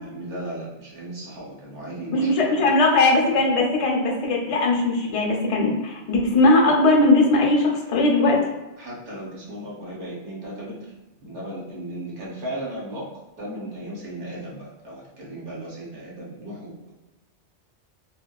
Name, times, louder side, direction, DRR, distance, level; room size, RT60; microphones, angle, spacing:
voice 1, 0.0-2.5 8.8-10.9 11.2-13.1 13.4-16.9, right 1 dB, 75° right, -5 dB, 1.3 m, -36 dB
voice 2, 2.1-8.4, left 2 dB, 50° left, -1 dB, 0.4 m, -19 dB
2.6 x 2.3 x 2.2 m, 1.0 s
omnidirectional pair, 1.2 m